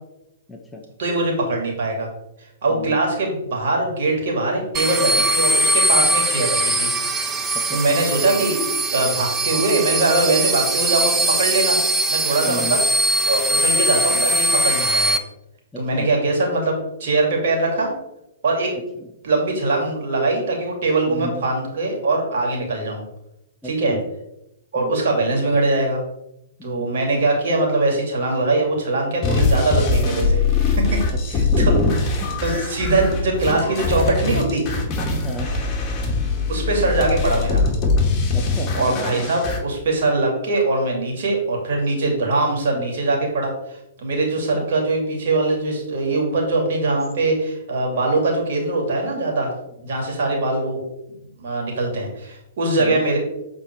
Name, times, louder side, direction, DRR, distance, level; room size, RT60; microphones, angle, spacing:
voice 1, 0.5-0.8 2.7-3.0 7.5-7.8 12.4-12.8 15.7-16.1 21.1-21.4 23.6-24.0 24.8-24.9 26.6-26.9 31.5-32.3 35.2-35.5 38.3-38.8 44.5-44.7 52.8-53.0, left 1 dB, 5° left, 1 dB, 1.0 m, -32 dB
voice 2, 1.0-2.1 2.6-6.9 7.3-7.4 7.7-8.6 8.9-11.8 12.1-12.8 13.3-15.1 15.8-16.7 17.0-17.9 18.4-18.7 19.2-23.0 23.6-24.0 24.7-26.0 26.6-30.4 30.8-31.0 31.3-31.7 32.4-34.7 36.5-37.6 38.7-49.5 49.8-50.8 51.4-53.2, right 2 dB, 60° right, -1 dB, 2.7 m, -22 dB
sound 1, 4.7-15.2, right 1 dB, 20° right, 0.7 m, -21 dB
sound 2, 29.2-39.6, left 3 dB, 30° left, 2.3 m, -22 dB
7.5 x 4.3 x 4.7 m, 0.85 s
hypercardioid pair, 115°, 0 cm